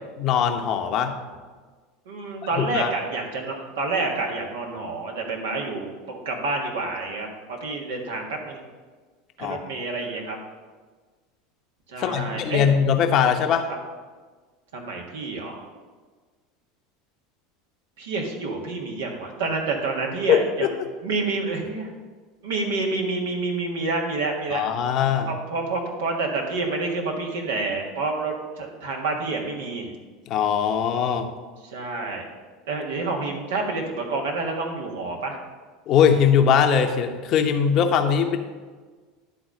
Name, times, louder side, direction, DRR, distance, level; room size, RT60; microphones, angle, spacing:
voice 1, 0.2-1.2 2.6-2.9 9.4-9.6 12.0-13.7 20.3-20.7 24.5-25.3 30.3-31.3 35.9-38.4, left 7 dB, 50° left, 6 dB, 0.9 m, -21 dB
voice 2, 2.0-8.6 9.4-10.4 11.9-12.7 14.7-15.6 18.0-20.7 21.0-21.9 22.4-24.6 25.3-29.9 31.7-32.3 32.7-35.4, right 3 dB, 75° right, 0 dB, 1.6 m, -28 dB
10.5 x 4.0 x 6.4 m, 1.4 s
hypercardioid pair, 85°, 0 cm